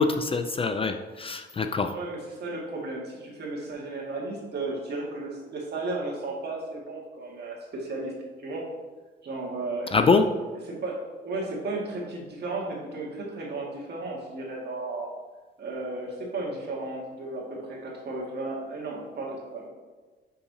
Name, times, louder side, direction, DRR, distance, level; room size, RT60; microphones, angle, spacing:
voice 1, 0.0-1.9 9.9-10.3, left 4 dB, 30° left, 7 dB, 0.4 m, -24 dB
voice 2, 1.9-8.1 8.4-8.7 9.2-10.0 10.7-15.1 15.6-19.7, right 2 dB, 55° right, -2 dB, 1.8 m, -34 dB
6.3 x 5.6 x 2.8 m, 1.3 s
cardioid pair, 90°, 20 cm